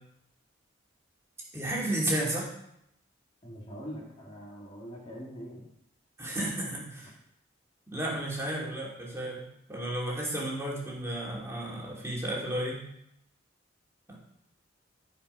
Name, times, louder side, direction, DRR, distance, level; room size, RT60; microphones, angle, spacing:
voice 1, 1.5-2.5 6.2-7.1 7.9-9.4 9.7-12.8 14.1-14.2, right 1 dB, 15° right, -4 dB, 2.6 m, -32 dB
voice 2, 3.4-5.7 7.0-7.1, equal, 30° left, -3 dB, 2.1 m, -43 dB
13.5 x 5.2 x 5.4 m, 0.77 s
head